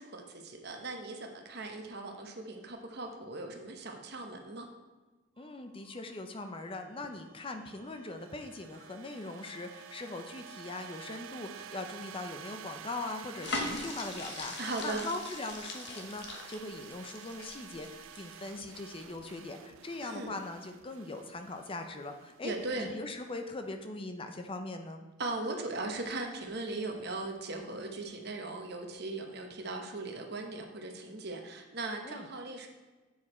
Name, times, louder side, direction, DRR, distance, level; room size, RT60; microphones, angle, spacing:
voice 1, 0.0-4.7 14.6-15.1 20.0-20.4 22.4-22.9 25.2-32.7, right 2 dB, 55° right, 4 dB, 1.0 m, -38 dB
voice 2, 5.4-14.5 14.8-25.1 32.0-32.3, left 2 dB, 25° left, 6 dB, 0.6 m, -41 dB
sound 1, 5.4-23.7, right 9 dB, 90° right, 0.4 m, -51 dB
sound 2, 13.4-18.8 19.2-19.4, left 2 dB, 60° left, 1.1 m, -41 dB
8.3 x 4.8 x 4.3 m, 1.3 s
head